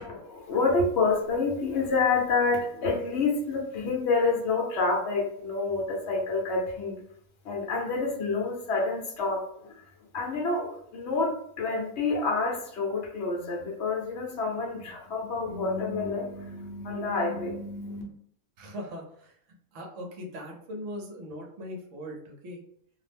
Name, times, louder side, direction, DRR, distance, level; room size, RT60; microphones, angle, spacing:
voice 1, 0.0-7.0 7.4-9.9 10.1-18.0, left 3 dB, 55° left, 0 dB, 0.8 m, -28 dB
voice 2, 18.6-22.6, equal, 60° right, 0 dB, 0.9 m, -40 dB
2.6 x 2.0 x 3.3 m, 0.66 s
omnidirectional pair, 1.6 m